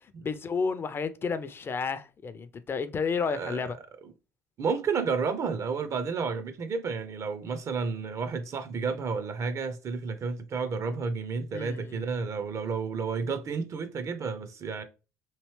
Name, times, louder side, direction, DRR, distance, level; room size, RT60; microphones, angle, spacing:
voice 1, 0.2-3.8 11.5-12.0, left 5 dB, 30° left, 0.4 m, -31 dB
voice 2, 3.3-3.6 4.0-4.1 4.6-14.8, right 5 dB, 40° right, 0.6 m, -31 dB
3.0 x 2.7 x 3.1 m
hypercardioid pair, 60°, 8 cm